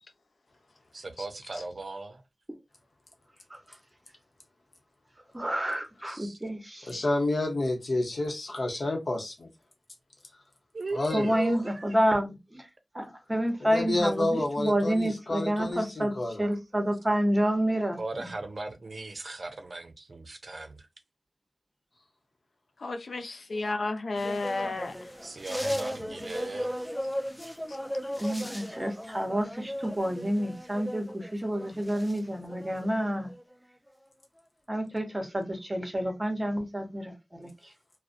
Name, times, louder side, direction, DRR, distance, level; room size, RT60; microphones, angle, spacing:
voice 1, 0.9-2.2 6.1-6.4 10.7-11.9 14.4-14.5 18.0-20.9 25.2-26.9, right 3 dB, 60° right, 0.5 m, -38 dB
voice 2, 5.3-6.9 11.1-12.7 12.9-16.1 16.4-18.0 28.2-33.3 34.7-37.5, equal, 25° right, 0.8 m, -29 dB
voice 3, 6.8-9.5 10.9-11.3 13.6-16.4, left 2 dB, 70° left, 0.7 m, -29 dB
voice 4, 22.8-25.0, left 3 dB, 85° left, 0.4 m, -32 dB
sound 1, 24.1-32.2 32.5-33.5 33.9-34.0, equal, 10° left, 0.3 m, -36 dB
2.4 x 2.0 x 2.4 m
wide cardioid pair, 60°, 0 cm